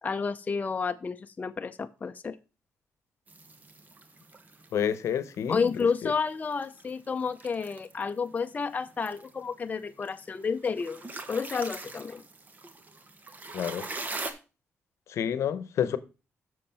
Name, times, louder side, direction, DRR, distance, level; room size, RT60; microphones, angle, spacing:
voice 1, 0.0-2.4 5.5-12.2, left 5 dB, 30° left, 0.6 m, -31 dB
sound 1, 3.3-14.3, right 3 dB, 35° right, 1.3 m, -43 dB
voice 2, 4.7-5.6 6.0-6.1 13.5-13.9 15.1-16.0, left 9 dB, 75° left, 0.9 m, -29 dB
7.6 x 6.3 x 4.3 m
cardioid pair, 95°, 5 cm